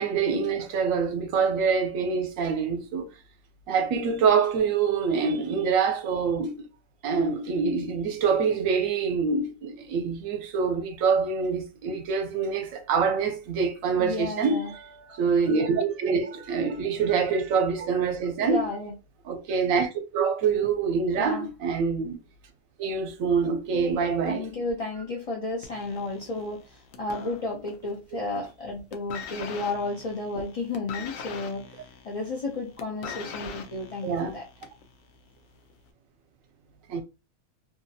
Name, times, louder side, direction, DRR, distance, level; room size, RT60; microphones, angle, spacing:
voice 1, 0.0-3.1 3.7-6.6 7.0-14.6 15.2-18.7 19.3-22.2 22.8-24.4 34.0-34.3 36.9-37.0, right 5 dB, 75° right, 1.0 m, -25 dB
voice 2, 14.0-15.8 16.2-17.6 17.9-18.0 18.4-18.9 21.2-21.5 23.7-34.4, left 2 dB, 50° left, 0.4 m, -33 dB
sound 1, 25.6-28.0 28.2-28.6 28.9-34.9 35.7-35.8, left 6 dB, 75° left, 0.9 m, -41 dB
2.7 x 2.4 x 2.6 m
omnidirectional pair, 1.4 m